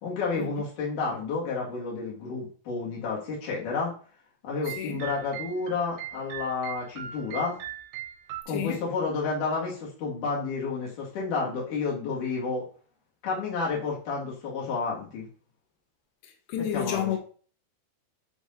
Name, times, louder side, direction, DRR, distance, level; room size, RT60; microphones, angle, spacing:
voice 1, 0.0-3.9 4.4-7.6 8.5-12.6 13.2-15.3 16.7-17.1, left 4 dB, 55° left, 3.1 m, -30 dB
sound 1, 4.7-8.4, right 12 dB, 90° right, 2.9 m, -40 dB
voice 2, 16.5-17.2, left 10 dB, 90° left, 3.0 m, -29 dB
8.0 x 4.9 x 2.6 m
omnidirectional pair, 4.8 m